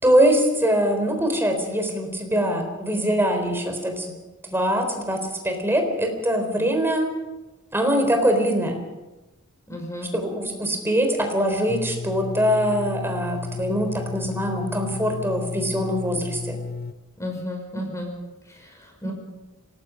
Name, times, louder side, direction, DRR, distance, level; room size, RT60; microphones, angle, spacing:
voice 1, 0.0-4.1 4.4-7.1 7.7-8.8 10.1-16.6, equal, 10° right, 4 dB, 4.0 m, -23 dB
voice 2, 9.7-10.1 17.2-18.1 18.5-18.7 19.0-19.1, left 1 dB, 15° left, 1 dB, 5.6 m, -32 dB
sound 1, 11.7-16.9, left 4 dB, 45° left, 0.8 m, -33 dB
26.5 x 19.5 x 5.2 m, 1.1 s
head